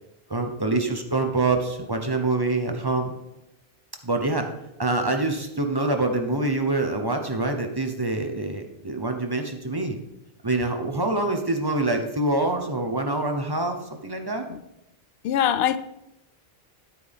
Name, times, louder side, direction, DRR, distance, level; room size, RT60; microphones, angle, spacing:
voice 1, 0.3-3.1 4.0-4.5 4.8-10.0 10.4-14.5, right 2 dB, 25° right, 0.9 m, -25 dB
voice 2, 15.2-15.8, left 10 dB, 75° left, 0.8 m, -22 dB
9.5 x 9.0 x 3.5 m
omnidirectional pair, 1.0 m